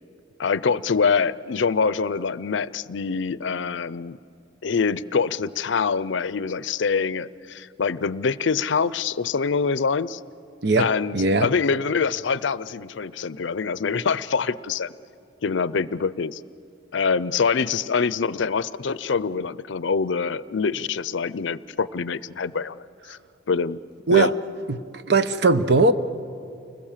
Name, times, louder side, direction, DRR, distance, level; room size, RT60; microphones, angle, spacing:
voice 1, 0.4-4.2 4.6-10.2 10.8-14.9 15.4-16.4 16.9-22.8 23.1-23.2 23.5-23.8 24.1-24.3, left 5 dB, 75° left, 0.5 m, -25 dB
voice 2, 10.6-11.5 24.1-24.4 24.7-25.9, right 3 dB, 65° right, 0.9 m, -20 dB
29.5 x 20.5 x 7.4 m
head